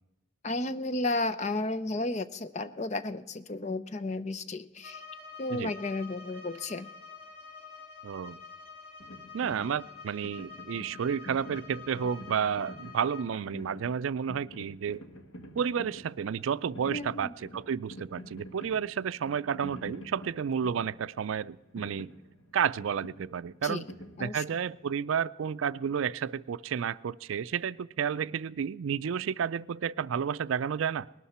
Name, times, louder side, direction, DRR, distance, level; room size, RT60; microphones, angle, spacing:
voice 1, 0.4-5.0 5.4-6.9 16.9-17.3 23.6-23.8 24.2-24.4, left 2 dB, 35° left, 14 dB, 0.5 m, -33 dB
Bowed string instrument, 4.8-13.4, left 5 dB, 25° right, 4.5 m, -48 dB
voice 2, 8.0-8.4 9.3-15.0 15.6-22.1 22.5-23.9 24.2-31.1, right 7 dB, 80° right, 17 dB, 0.4 m, -31 dB
sound 1, 9.0-24.7, equal, 85° left, 1.3 m, -48 dB
19.5 x 12.5 x 4.3 m, 0.99 s
head